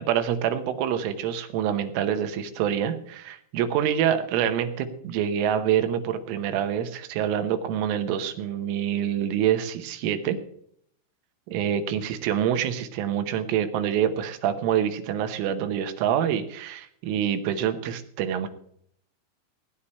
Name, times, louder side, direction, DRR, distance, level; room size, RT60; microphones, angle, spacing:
voice 1, 0.0-10.4 11.5-18.5, right 9 dB, 90° right, 8 dB, 3.6 m, -26 dB
17.5 x 9.9 x 4.3 m, 0.68 s
omnidirectional pair, 5.5 m